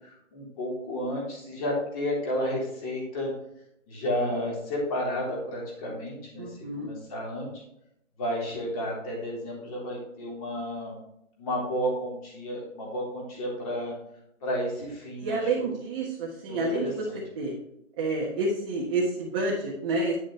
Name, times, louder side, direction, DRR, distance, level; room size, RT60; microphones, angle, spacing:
voice 1, 0.0-3.3 3.9-7.6 8.2-11.0 11.4-13.9 14.4-15.7 16.5-17.2, equal, 25° left, -4 dB, 3.6 m, -32 dB
voice 2, 6.4-6.9 15.2-17.0 17.3-17.6 18.0-20.2, right 2 dB, 25° right, -4 dB, 1.4 m, -29 dB
9.8 x 7.2 x 3.2 m, 0.79 s
hypercardioid pair, 160°, 39 cm